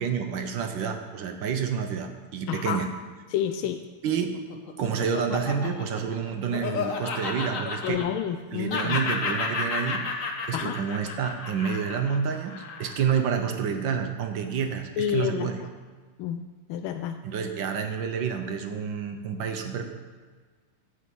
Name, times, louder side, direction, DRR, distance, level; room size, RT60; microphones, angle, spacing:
voice 1, 0.0-2.9 4.0-4.4 4.8-8.0 8.5-15.6 17.2-19.9, right 7 dB, 70° right, 6 dB, 1.5 m, -29 dB
voice 2, 2.5-2.8 3.3-3.8 7.8-9.0 10.5-10.7 15.0-15.5 16.2-16.4 16.7-17.2, left 9 dB, 80° left, 7 dB, 1.4 m, -29 dB
Laughter, 4.2-8.4 8.7-13.1, left 4 dB, 45° left, 1.2 m, -32 dB
11.0 x 5.3 x 8.4 m, 1.5 s
omnidirectional pair, 2.3 m